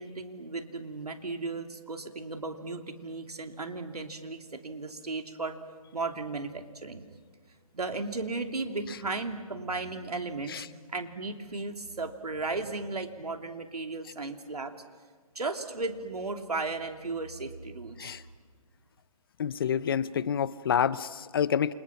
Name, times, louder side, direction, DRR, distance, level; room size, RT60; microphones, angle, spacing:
voice 1, 0.0-5.6 5.9-7.0 7.7-14.7 15.3-18.2, right 3 dB, 90° right, 5 dB, 2.8 m, -35 dB
voice 2, 19.4-21.7, left 8 dB, 40° left, 18 dB, 0.6 m, -28 dB
28.5 x 27.0 x 5.9 m, 1.5 s
hypercardioid pair, 155°, 19 cm